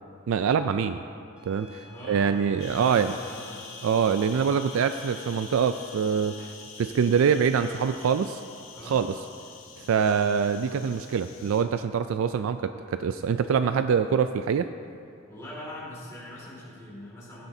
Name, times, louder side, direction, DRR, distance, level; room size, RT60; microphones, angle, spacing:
voice 1, 0.3-1.0 1.5-3.1 3.8-8.4 8.9-9.1 9.8-14.7, right 6 dB, 75° right, 10 dB, 0.3 m, -25 dB
sound 1, 1.4-6.4, left 1 dB, 5° right, 2.5 m, -51 dB
voice 2, 1.8-3.6 8.7-9.0 15.3-17.5, left 1 dB, 15° left, -6 dB, 2.2 m, -42 dB
sound 2, 2.6-11.6, left 5 dB, 80° left, 1.5 m, -46 dB
16.0 x 12.0 x 2.7 m, 2.5 s
head